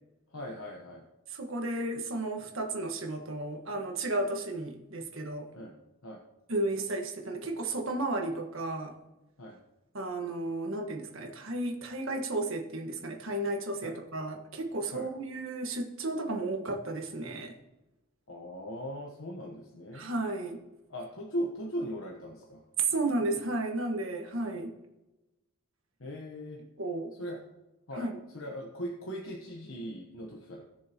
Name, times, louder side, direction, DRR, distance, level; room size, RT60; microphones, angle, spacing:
voice 1, 0.3-1.0 5.5-5.7 6.0-6.2 9.4-9.6 13.8-14.0 14.9-15.1 18.3-20.0 20.9-22.6 26.0-26.6 27.2-27.4 27.9-28.1 28.3-30.6, equal, 65° left, -1 dB, 1.2 m, -39 dB
voice 2, 1.3-5.5 6.5-8.9 9.9-17.5 19.9-20.6 22.8-24.8 26.8-27.1 27.9-28.2, right 2 dB, 65° right, 2 dB, 1.6 m, -33 dB
19.0 x 6.6 x 3.0 m, 1.0 s
head